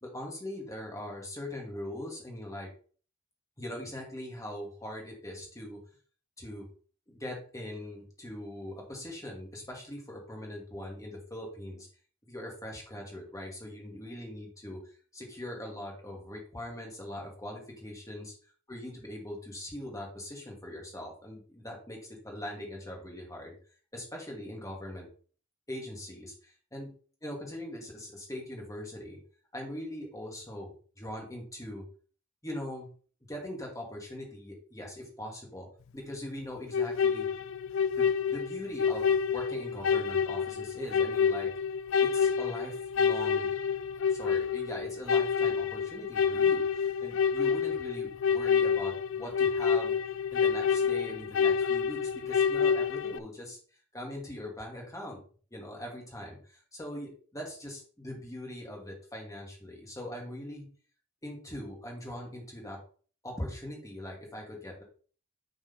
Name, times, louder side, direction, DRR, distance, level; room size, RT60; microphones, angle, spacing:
voice 1, 0.0-2.7 3.6-5.8 6.4-6.7 7.1-11.9 12.2-14.8 15.1-18.3 18.7-23.6 23.9-25.1 25.7-26.9 27.2-29.2 29.5-30.7 31.0-31.8 32.4-32.9 33.3-35.7 35.9-37.3 38.0-41.5 42.0-43.5 44.1-46.6 47.0-50.0 50.3-53.6 53.9-55.2 55.5-60.7 61.2-62.8 63.2-64.8, left 1 dB, 15° left, 0 dB, 2.2 m, -41 dB
sound 1, 36.7-53.2, left 6 dB, 65° left, 0.4 m, -28 dB
5.9 x 4.2 x 5.5 m, 0.42 s
head